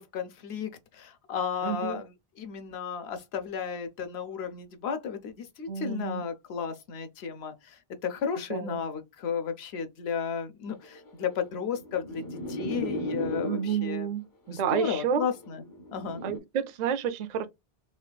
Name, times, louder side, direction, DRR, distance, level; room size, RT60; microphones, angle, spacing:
voice 1, 0.0-14.1 14.5-15.6 15.9-16.2, left 7 dB, 80° left, 0.9 m, -34 dB
voice 2, 1.6-2.0 5.7-6.2 8.5-8.8 13.4-15.2 16.2-17.5, right 7 dB, 55° right, 0.5 m, -30 dB
sound 1, 10.8-13.9 14.8-16.4, left 1 dB, 25° left, 0.5 m, -36 dB
3.8 x 2.4 x 2.2 m
omnidirectional pair, 1.1 m